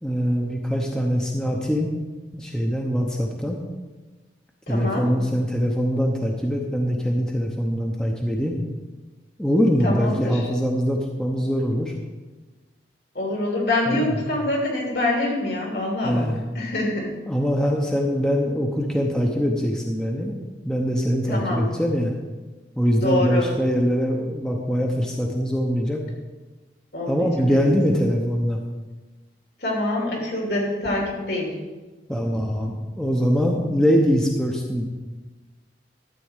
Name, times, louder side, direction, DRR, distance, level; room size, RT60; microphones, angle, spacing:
voice 1, 0.0-1.9 2.3-3.6 4.7-8.6 9.4-11.9 13.9-14.2 16.0-16.4 17.3-20.4 20.6-22.1 22.8-26.0 27.1-28.6 32.1-34.8, equal, 5° left, 0 dB, 0.9 m, -23 dB
voice 2, 4.7-5.1 9.8-10.4 13.1-16.3 16.5-17.1 21.3-21.6 23.0-23.5 26.9-27.7 29.6-31.5, left 2 dB, 65° left, -1 dB, 3.0 m, -25 dB
12.5 x 4.2 x 8.1 m, 1.2 s
head